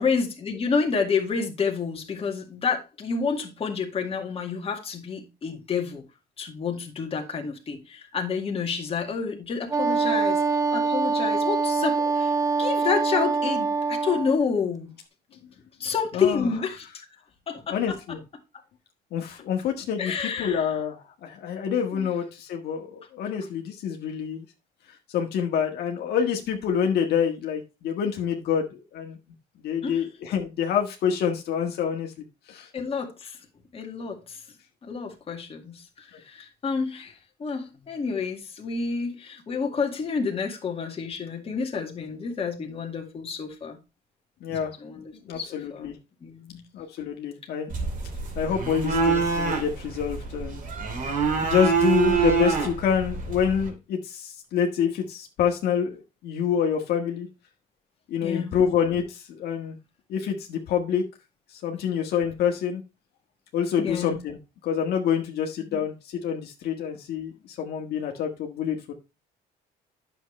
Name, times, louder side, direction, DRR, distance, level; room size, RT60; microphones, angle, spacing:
voice 1, 0.0-6.0 6.4-10.4 10.7-12.3 12.6-14.9 15.8-17.1 17.5-18.2 20.0-20.7 21.9-22.1 29.8-30.0 32.7-33.4 33.7-34.4 34.8-43.8 44.5-45.9 46.2-46.6 58.2-58.6 63.8-64.2 65.7-65.8, left 5 dB, 35° left, 2.0 m, -29 dB
Wind instrument woodwind instrument, 9.7-14.4, right 4 dB, 20° right, 0.9 m, -24 dB
voice 2, 16.1-16.5 17.7-18.2 19.1-24.4 25.1-29.2 29.6-32.7 36.1-36.2 44.4-44.7 45.2-46.0 46.7-47.7 48.3-50.6 51.4-57.3 58.1-59.8 60.1-61.0 61.5-62.8 63.5-64.4 64.6-68.9, left 8 dB, 70° left, 1.6 m, -27 dB
sound 1, 47.7-53.7, right 5 dB, 50° right, 2.7 m, -26 dB
9.2 x 6.9 x 3.2 m
cardioid pair, 110°, 17 cm